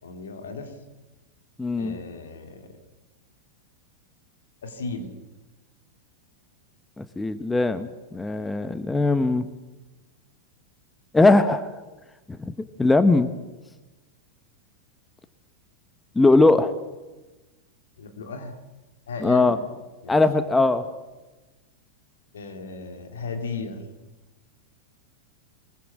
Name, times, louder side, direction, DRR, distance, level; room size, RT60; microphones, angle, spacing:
voice 1, 0.0-0.7 1.8-2.7 4.6-5.2 18.0-18.6 19.1-19.6 20.0-20.2 22.3-23.9, left 3 dB, 65° left, 6 dB, 3.6 m, -35 dB
voice 2, 1.6-2.0 7.0-9.4 11.1-11.7 12.8-13.3 16.1-16.7 19.2-19.6 20.1-20.8, left 2 dB, 10° left, 12 dB, 1.2 m, -20 dB
23.5 x 22.0 x 7.5 m, 1.1 s
figure-of-eight pair, 90°, 0 cm